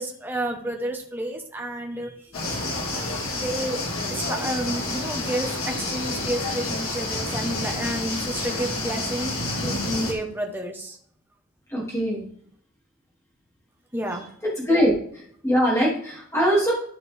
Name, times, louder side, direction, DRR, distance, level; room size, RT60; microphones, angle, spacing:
voice 1, 0.0-2.1 3.3-3.8 4.1-9.3 9.6-11.0 13.9-14.3, right 1 dB, 10° right, 1 dB, 1.1 m, -30 dB
sound 1, 2.3-10.1, left 2 dB, 70° left, 2.0 m, -29 dB
voice 2, 11.7-12.2 14.6-14.9 15.4-16.7, equal, 10° left, -5 dB, 2.6 m, -21 dB
12.0 x 5.3 x 3.6 m, 0.64 s
head